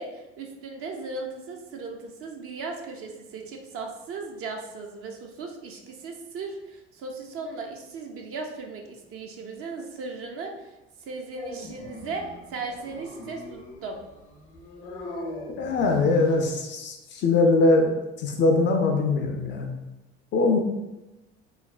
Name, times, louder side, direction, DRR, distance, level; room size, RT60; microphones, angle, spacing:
voice 1, 0.0-10.8 11.0-14.0, right 3 dB, 40° right, 2 dB, 0.5 m, -37 dB
Dog, 11.4-16.5, left 2 dB, 75° left, 0.7 m, -41 dB
voice 2, 15.6-17.9 18.2-19.7 20.3-20.6, left 3 dB, 35° left, 3 dB, 0.4 m, -22 dB
3.0 x 2.1 x 2.3 m, 1.0 s
figure-of-eight pair, 60°, 34 cm